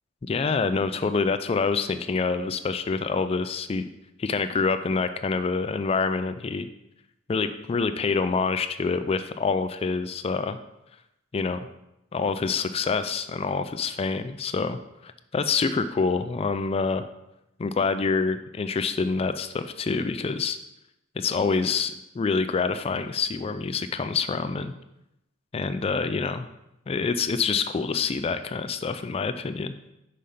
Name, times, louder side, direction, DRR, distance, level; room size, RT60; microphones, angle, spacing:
voice 1, 0.2-3.8 4.2-6.7 7.3-10.6 11.3-11.6 12.1-17.0 17.6-20.6 21.2-24.7 25.5-26.5 26.9-29.7, left 4 dB, 30° left, 10 dB, 0.3 m, -26 dB
5.6 x 5.5 x 5.0 m, 0.86 s
head